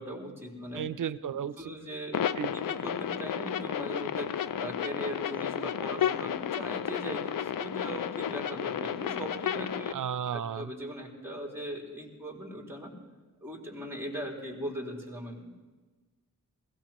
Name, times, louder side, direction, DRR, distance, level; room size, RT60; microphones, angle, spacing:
voice 1, 0.0-0.8 1.2-10.0 10.3-12.9 13.4-15.6, equal, 5° right, -3 dB, 4.1 m, -40 dB
voice 2, 0.7-1.5 2.4-2.5 9.9-10.7, right 8 dB, 70° right, 15 dB, 0.5 m, -33 dB
sound 1, 2.1-9.9, left 9 dB, 80° left, 0.5 m, -32 dB
20.5 x 17.0 x 3.0 m, 1.3 s
wide cardioid pair, 75°, 33 cm